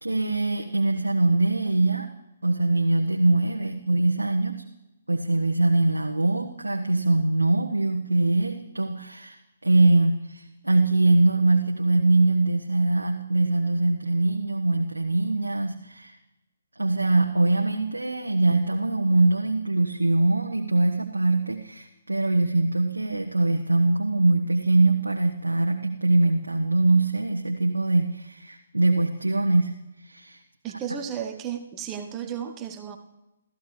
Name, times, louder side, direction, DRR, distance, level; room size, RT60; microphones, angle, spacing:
voice 1, 0.0-2.1 2.4-4.6 5.1-16.2 16.8-29.7 30.0-30.4, right 2 dB, 80° right, 1 dB, 1.2 m, -23 dB
voice 2, 30.6-33.0, right 8 dB, 20° right, 6 dB, 1.1 m, -33 dB
29.0 x 15.0 x 3.3 m, 0.95 s
figure-of-eight pair, 135°, 0 cm